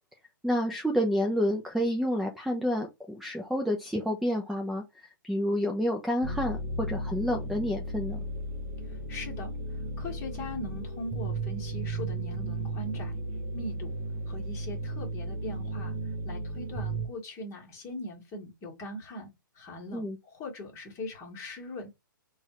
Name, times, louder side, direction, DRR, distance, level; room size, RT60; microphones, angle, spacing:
voice 1, 0.4-8.2 19.9-20.2, equal, ahead, 0.5 m, -29 dB
sound 1, 6.2-17.1, right 2 dB, 30° right, 0.8 m, -35 dB
voice 2, 8.8-13.2 13.5-13.9 14.3-21.9, left 2 dB, 25° left, 1.4 m, -41 dB
4.0 x 2.4 x 2.9 m
hypercardioid pair, 130°, 11 cm